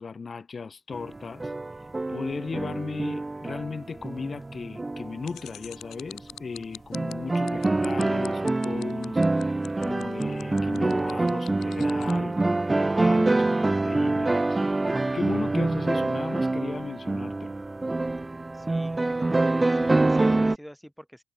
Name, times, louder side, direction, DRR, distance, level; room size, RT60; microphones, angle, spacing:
voice 1, 0.0-1.5 2.1-14.6 14.9-17.6, left 5 dB, 45° left, 4.0 m, -36 dB
sound 1, 0.9-5.5 6.0-6.1 6.9-20.6, right 2 dB, 25° right, 1.7 m, -26 dB
sound 2, 5.2-12.2, left 12 dB, 80° left, 2.9 m, -44 dB
voice 2, 18.5-21.2, equal, ahead, 6.7 m, -46 dB
supercardioid pair, 55°, 0 cm